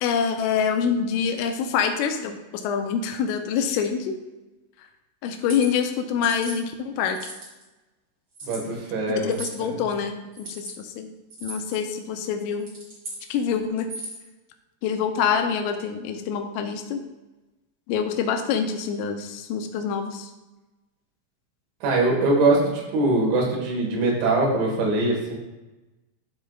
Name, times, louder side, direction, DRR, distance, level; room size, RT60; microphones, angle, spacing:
voice 1, 0.0-4.2 4.8-4.9 5.2-7.3 9.1-11.1 11.4-12.7 13.3-13.9 14.8-17.0 17.9-20.3, left 7 dB, 85° left, 5 dB, 3.2 m, -26 dB
sound 1, 5.3-5.7 6.2-6.6 7.1-7.6 8.3-8.6 9.3-9.6 10.3-10.7 11.3-11.8 12.5-13.2 13.8-14.3, right 2 dB, 40° right, 1.4 m, -37 dB
voice 2, 8.4-9.3 9.6-9.7 21.8-25.3, right 2 dB, 70° right, -2 dB, 3.8 m, -22 dB
13.0 x 4.7 x 2.4 m, 1.1 s
omnidirectional pair, 5.7 m